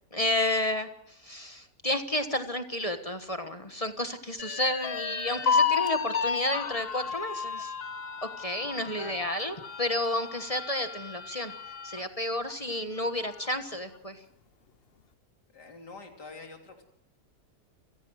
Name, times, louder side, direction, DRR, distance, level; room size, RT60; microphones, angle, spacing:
voice 1, 0.1-7.7 8.2-11.5 11.8-14.2, left 1 dB, 25° left, 8 dB, 1.2 m, -31 dB
sound 1, 4.4-12.0 12.5-12.6 13.0-13.6, left 6 dB, 45° left, 1.0 m, -32 dB
voice 2, 8.9-9.3 15.5-16.8, left 3 dB, 85° left, 2 dB, 3.7 m, -46 dB
28.0 x 16.0 x 6.4 m, 0.82 s
omnidirectional pair, 1.7 m